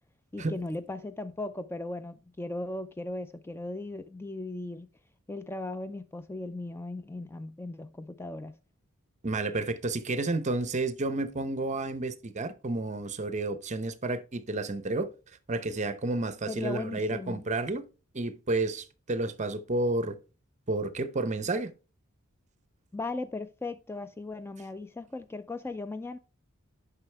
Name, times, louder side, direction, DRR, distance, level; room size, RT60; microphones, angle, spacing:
voice 1, 0.3-4.9 5.3-8.6 16.4-17.4 22.9-26.2, left 2 dB, 10° left, 0.3 m, -37 dB
voice 2, 9.2-15.1 15.5-17.9 18.1-20.2 20.7-21.7, right 2 dB, 35° right, 0.8 m, -31 dB
9.6 x 5.7 x 3.3 m
head